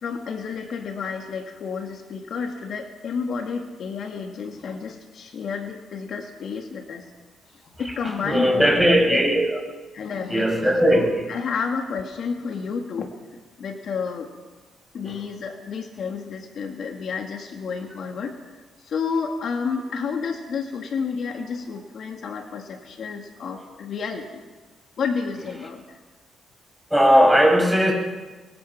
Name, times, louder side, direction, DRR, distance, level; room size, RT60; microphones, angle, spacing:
voice 1, 0.0-7.0 7.8-9.2 9.9-13.1 13.6-14.3 14.9-24.4 25.0-26.0, left 5 dB, 60° left, 3 dB, 2.3 m, -30 dB
voice 2, 7.8-9.6 10.3-11.3 15.0-15.1 26.9-27.9, equal, ahead, 1 dB, 5.9 m, -18 dB
24.0 x 22.0 x 5.9 m, 1.3 s
cardioid pair, 90°, 0 cm